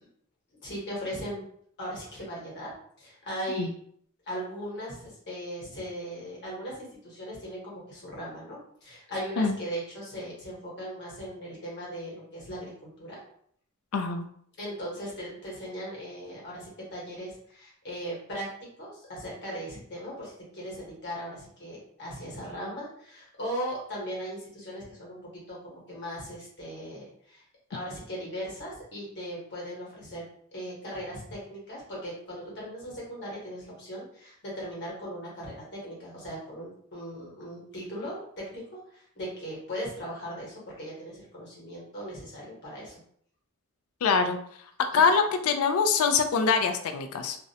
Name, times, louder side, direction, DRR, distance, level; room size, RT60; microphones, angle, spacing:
voice 1, 0.6-1.4 1.8-3.7 4.3-13.2 14.6-18.5 18.8-27.4 27.7-30.2 30.5-43.0 44.9-45.2, equal, 50° left, -5 dB, 1.1 m, -38 dB
voice 2, 13.9-14.3 44.0-44.4 44.8-47.4, left 5 dB, 65° left, 7 dB, 0.3 m, -24 dB
2.5 x 2.1 x 2.6 m, 0.65 s
head